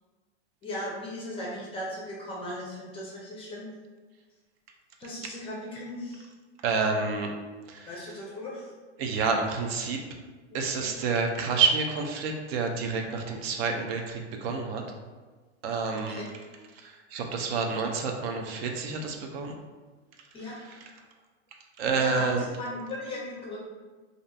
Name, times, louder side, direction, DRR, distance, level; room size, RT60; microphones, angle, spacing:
voice 1, 0.6-3.7 5.0-6.3 7.9-8.7 10.5-10.9 16.1-16.3 20.3-20.5 22.0-23.6, left 1 dB, 15° left, -4 dB, 0.4 m, -37 dB
voice 2, 6.6-7.3 7.7-7.9 9.0-10.0 10.5-14.8 15.6-16.2 16.7-19.6 20.6-20.8 21.8-22.4, right 4 dB, 60° right, 3 dB, 0.5 m, -29 dB
2.6 x 2.5 x 2.2 m, 1.4 s
hypercardioid pair, 120°, 35 cm